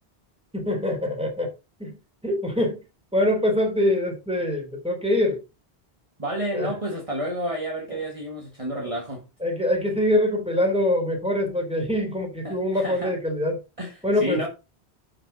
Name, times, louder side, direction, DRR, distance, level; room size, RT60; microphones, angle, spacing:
voice 1, 0.5-1.5 1.8-2.0 2.2-2.8 3.1-5.4 6.5-6.7 9.4-13.6 14.0-14.4, left 1 dB, 5° right, 3.7 m, -24 dB
voice 2, 6.2-9.2 12.4-13.1 13.8-14.5, right 1 dB, 30° right, 1.9 m, -30 dB
11.5 x 5.2 x 4.1 m
omnidirectional pair, 1.1 m